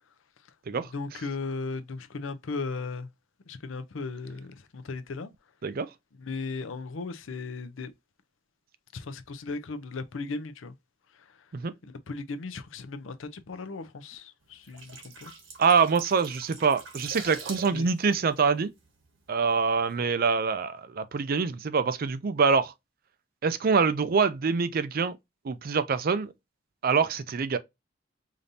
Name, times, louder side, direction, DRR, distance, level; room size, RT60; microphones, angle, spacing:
voice 1, 0.9-3.1 3.5-5.3 6.2-7.9 8.9-10.7 11.1-11.4 11.8-15.3 17.7-17.9, left 3 dB, 80° left, 0.6 m, -36 dB
sound 1, 14.5-19.3 19.6-19.8, right 5 dB, 80° right, 1.3 m, -44 dB
voice 2, 15.6-18.7 19.3-22.7 23.4-25.2 25.4-26.3 26.8-27.6, right 5 dB, 50° right, 0.5 m, -25 dB
5.1 x 2.7 x 2.6 m
head